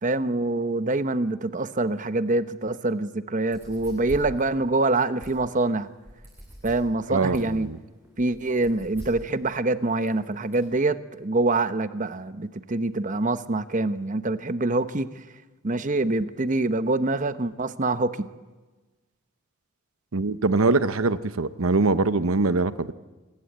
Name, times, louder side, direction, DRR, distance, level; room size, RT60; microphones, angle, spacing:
voice 1, 0.0-5.9 6.6-7.7 8.2-15.1 15.6-18.3, right 2 dB, 40° right, 12 dB, 0.9 m, -25 dB
sound 1, 3.4-10.7, equal, 10° right, 7.2 m, -44 dB
voice 2, 7.1-7.8 20.1-22.9, right 3 dB, 85° right, 13 dB, 0.9 m, -23 dB
27.5 x 20.0 x 8.8 m, 1.2 s
head